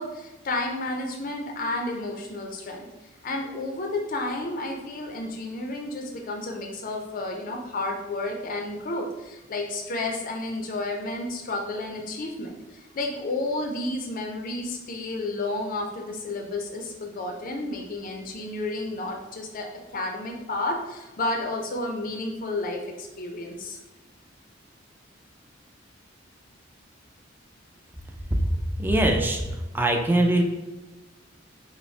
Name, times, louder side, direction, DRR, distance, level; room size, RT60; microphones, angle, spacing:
voice 1, 0.0-2.9 3.2-19.7 19.9-23.8, left 2 dB, 45° left, 2 dB, 0.5 m, -31 dB
voice 2, 28.8-29.4 29.7-30.4, right 1 dB, 10° right, 3 dB, 0.4 m, -21 dB
5.2 x 2.0 x 3.2 m, 1.1 s
head